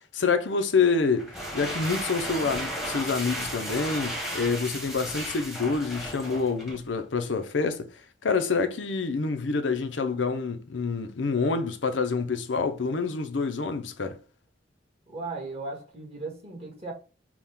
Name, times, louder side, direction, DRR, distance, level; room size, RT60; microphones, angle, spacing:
voice 1, 0.1-7.8 8.2-14.2, left 4 dB, 85° left, 0.7 m, -27 dB
sound 1, 1.1-6.9, equal, ahead, 1.2 m, -34 dB
voice 2, 15.1-16.9, right 3 dB, 30° right, 1.9 m, -37 dB
6.0 x 2.4 x 3.6 m
head